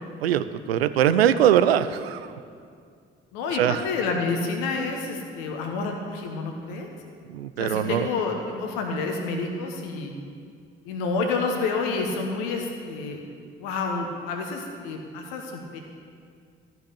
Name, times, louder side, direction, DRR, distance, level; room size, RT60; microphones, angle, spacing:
voice 1, 0.2-2.2 3.6-3.8 7.3-8.1, right 10 dB, 85° right, 12 dB, 0.5 m, -21 dB
voice 2, 3.3-6.9 7.6-10.1 10.8-13.2 13.6-15.8, left 4 dB, 75° left, 2 dB, 1.3 m, -29 dB
13.5 x 5.9 x 9.6 m, 2.2 s
figure-of-eight pair, 40°, 30 cm